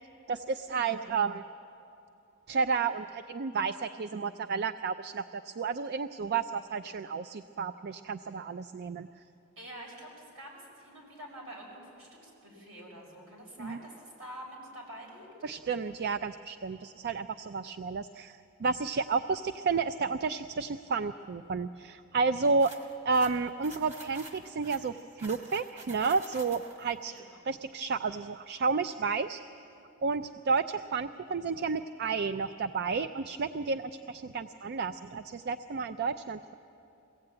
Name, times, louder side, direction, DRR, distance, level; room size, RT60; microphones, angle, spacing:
voice 1, 0.3-1.4 2.5-9.1 13.6-13.8 15.4-22.7 23.1-27.1 27.5-29.4 30.0-36.5, right 4 dB, 50° right, 11 dB, 0.4 m, -31 dB
voice 2, 9.6-15.3 27.0-27.4, equal, 75° right, -2 dB, 6.3 m, -47 dB
sound 1, 22.6-26.9, right 2 dB, 35° right, 2.2 m, -48 dB
22.5 x 16.5 x 8.7 m, 2.8 s
head